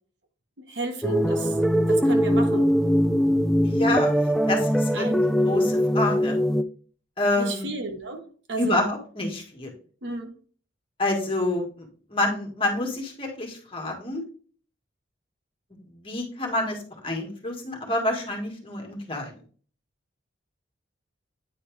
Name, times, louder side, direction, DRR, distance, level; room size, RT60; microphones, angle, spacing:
voice 1, 0.7-1.6 1.9-2.7 4.9-5.2 7.4-8.2 8.5-8.9 10.0-10.3, right 3 dB, 65° right, 5 dB, 1.4 m, -32 dB
sound 1, 1.0-6.6, equal, ahead, 0.3 m, -21 dB
voice 2, 3.6-4.2 4.5-6.4 7.2-7.7 8.6-9.7 11.0-14.2 15.9-19.4, left 2 dB, 25° left, 1 dB, 1.9 m, -28 dB
9.3 x 4.2 x 3.5 m, 0.43 s
head